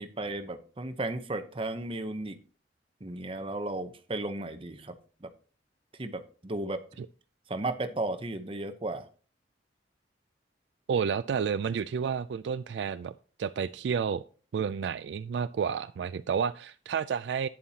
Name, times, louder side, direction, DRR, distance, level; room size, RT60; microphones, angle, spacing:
voice 1, 0.0-2.4 3.0-5.0 5.2-5.3 6.0-6.8 7.5-9.1, right 2 dB, 30° right, 9 dB, 0.8 m, -34 dB
voice 2, 10.9-13.1 13.4-14.2 14.5-17.5, right 6 dB, 65° right, 14 dB, 0.3 m, -30 dB
11.0 x 8.8 x 2.8 m, 0.38 s
head